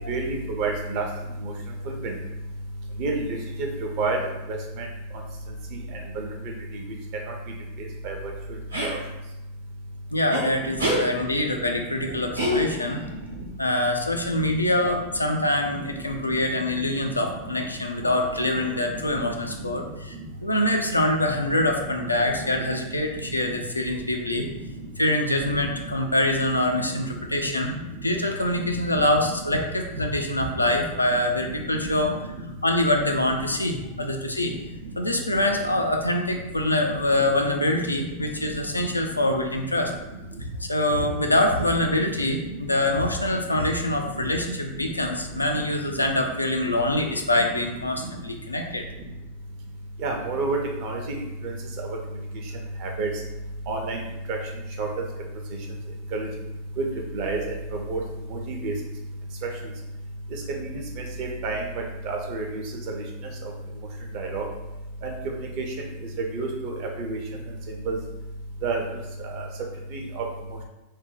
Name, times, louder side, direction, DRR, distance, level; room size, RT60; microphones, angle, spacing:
voice 1, 0.1-1.1 1.4-1.5 1.8-2.1 3.0-4.9 5.7-6.8 7.3-7.4 7.8-8.9 10.6-11.1 11.7-12.1 12.5-13.5 14.3-14.9 15.7-17.7 18.0-18.1 18.3-19.2 19.5-19.7 20.2-20.3 21.1-21.7 22.0-22.9 23.5-23.9 24.5-24.9 25.4-25.8 26.3-26.5 26.8-27.1 27.8-28.2 28.4-29.6 29.9-30.0 30.5-30.8 31.1-31.2 31.6-32.5 33.0-33.7 34.4-34.9 35.4-35.9 37.0-37.1 37.5-39.2 39.8-39.9 40.3-40.4 41.3-42.6 43.2-43.3 43.8-44.5 44.7-44.9 45.5-45.6 46.0-46.1 46.5-46.7 47.3-47.6 48.0-48.1 50.0-52.2 52.8-53.1 53.7-54.0 54.3-54.4 54.8-55.0 56.1-56.3 56.8-56.9 57.1-58.0 58.3-58.7 59.6-59.7 60.3-63.0 63.4-63.5 64.1-64.5 65.0-65.7 66.2-67.2 67.7-68.0 68.6-69.4 69.9-70.3, right 3 dB, 45° right, 1 dB, 0.6 m, -32 dB
sound 1, 8.7-9.0 10.3-10.4 10.8-11.0 12.4-13.0, equal, 80° right, 0.7 m, -25 dB
voice 2, 10.1-13.0 13.6-19.8 20.4-24.4 25.0-32.1 32.6-34.5 35.0-39.9 40.4-48.8, left 1 dB, 85° left, 2 dB, 0.4 m, -25 dB
2.6 x 2.1 x 3.9 m, 0.98 s
figure-of-eight pair, 90°, 0 cm